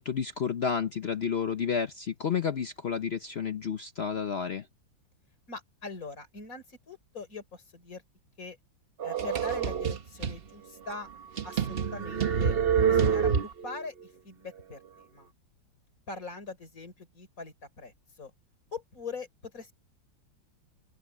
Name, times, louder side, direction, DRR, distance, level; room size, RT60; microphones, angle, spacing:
voice 1, 0.0-4.7, left 6 dB, 65° left, 0.6 m, -31 dB
voice 2, 5.5-8.0 8.4-8.6 9.0-11.1 11.4-12.5 12.8-15.3 16.1-18.3 18.7-19.7, left 4 dB, 45° left, 4.8 m, -42 dB
sound 1, 9.0-10.4 10.9-11.0 11.4-13.8, right 7 dB, 45° right, 0.8 m, -27 dB
omnidirectional pair, 2.1 m